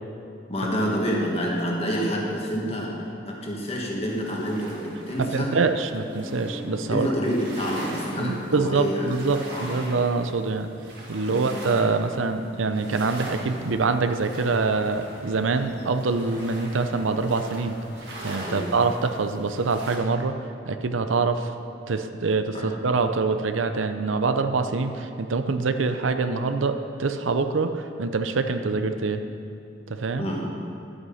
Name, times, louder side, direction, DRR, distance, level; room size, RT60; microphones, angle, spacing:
voice 1, 0.5-3.0 3.3-5.5 6.9-9.1 9.5-9.7 11.3-11.5 18.4-18.6 22.5-22.7 30.2-30.4, equal, 30° left, -2 dB, 1.8 m, -28 dB
sound 1, 4.0-6.7 7.2-20.0, right 1 dB, 60° right, 2.2 m, -42 dB
voice 2, 5.2-7.1 8.2-10.7 11.1-17.7 18.2-20.4 20.7-21.5 21.9-29.2 29.9-30.3, right 4 dB, 85° right, 8 dB, 0.6 m, -25 dB
Guitar, 6.2-10.8, equal, 5° right, 0.5 m, -44 dB
sound 2, 13.0-19.4, left 2 dB, 55° left, 0.9 m, -47 dB
11.5 x 8.2 x 5.6 m, 2.5 s
head